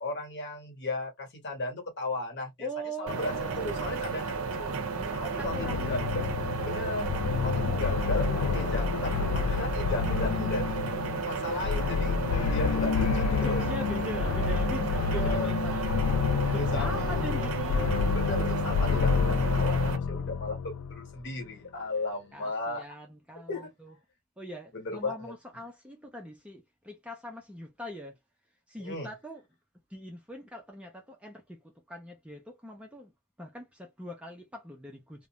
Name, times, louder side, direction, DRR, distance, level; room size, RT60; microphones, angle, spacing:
voice 1, 0.0-2.7 3.0-4.8 5.1-6.3 6.6-7.1 7.4-10.8 11.2-13.6 14.4-14.5 14.9-15.5 16.5-17.2 18.1-22.8 23.5-23.7 24.7-25.3 28.8-29.1, left 2 dB, 50° left, 1.1 m, -35 dB
voice 2, 2.6-4.0 5.0-6.1 13.4-15.9 16.2-18.0 22.3-23.9 24.4-28.2 28.7-29.4 29.9-31.6 31.9-33.1 33.4-35.3, equal, 5° right, 0.5 m, -42 dB
sound 1, 3.1-20.0, right 4 dB, 70° right, 0.6 m, -33 dB
sound 2, 5.4-21.1, left 5 dB, 75° left, 0.3 m, -29 dB
2.5 x 2.1 x 2.8 m
head